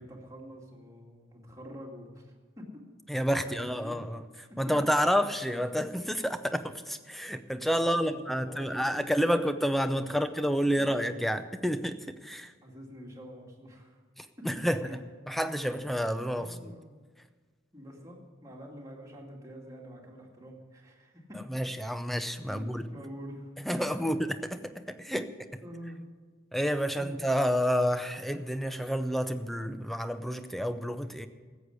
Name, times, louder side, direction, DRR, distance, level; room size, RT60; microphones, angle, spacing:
voice 1, 0.0-2.7 3.3-4.0 4.3-4.7 7.1-7.2 7.7-9.4 9.9-10.2 12.6-14.0 14.4-14.5 14.8-15.0 15.6-15.9 16.4-17.0 17.7-21.4 22.5-23.5 25.1-25.3 25.6-26.0 27.0-27.1, equal, 15° right, -1 dB, 2.3 m, -46 dB
voice 2, 3.1-4.2 4.6-12.5 14.2-15.0 15.3-16.7 21.5-22.8 23.6-25.3 26.5-31.3, equal, ahead, 10 dB, 0.6 m, -29 dB
14.0 x 8.2 x 8.0 m, 1.5 s
head